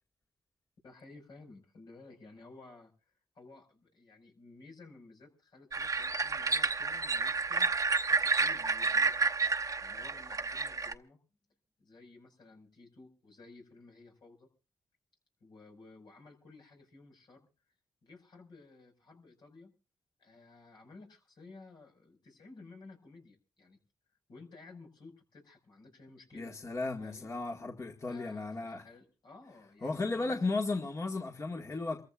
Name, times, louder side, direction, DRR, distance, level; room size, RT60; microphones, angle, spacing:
voice 1, 0.8-2.9 3.3-7.7 8.1-9.3 9.5-11.2 11.8-14.5 15.4-17.5 18.0-19.7 20.2-23.8 24.3-26.5 27.0-27.3 28.1-30.5, left 3 dB, 70° left, 5.9 m, -55 dB
sound 1, 5.7-10.9, right 4 dB, 45° right, 0.9 m, -30 dB
voice 2, 26.4-28.8 29.8-32.0, left 3 dB, 40° left, 2.0 m, -35 dB
27.5 x 14.5 x 2.6 m
supercardioid pair, 50°, 8 cm